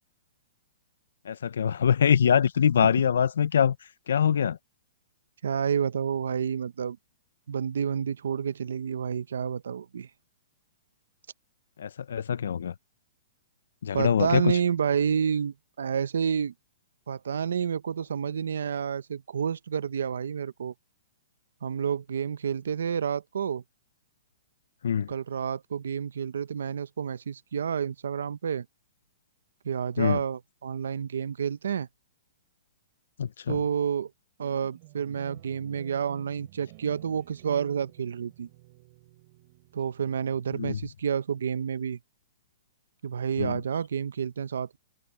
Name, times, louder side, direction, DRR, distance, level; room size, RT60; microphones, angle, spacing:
voice 1, 1.3-3.7 4.1-4.6 11.8-12.7 13.8-14.4 24.8-25.1 30.0-30.2 33.2-33.5 40.6-40.7 43.4-43.5, left 8 dB, 80° left, 0.4 m, -23 dB
voice 2, 5.4-7.0 7.5-10.1 13.9-16.5 17.1-20.7 21.6-23.6 25.1-28.7 29.6-31.9 33.5-34.1 34.4-38.5 39.7-42.0 43.0-44.8, right 7 dB, 90° right, 0.7 m, -29 dB
sound 1, 34.4-40.7, right 21 dB, 30° right, 5.9 m, -52 dB
hypercardioid pair, 175°, 0 cm